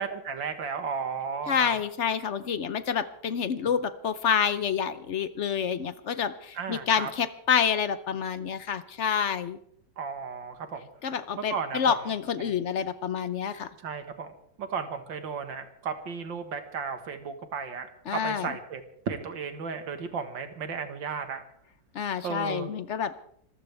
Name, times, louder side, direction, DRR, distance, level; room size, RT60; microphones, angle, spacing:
voice 1, 0.0-1.7 6.5-7.1 10.0-10.9 11.4-12.0 12.4-12.5 13.8-17.9 18.1-21.4 22.2-22.7, right 5 dB, 80° right, 8 dB, 2.2 m, -34 dB
voice 2, 1.5-9.6 11.0-13.7 18.1-18.5 21.9-23.1, left 7 dB, 60° left, 13 dB, 0.8 m, -28 dB
26.0 x 15.0 x 3.4 m, 0.67 s
omnidirectional pair, 2.0 m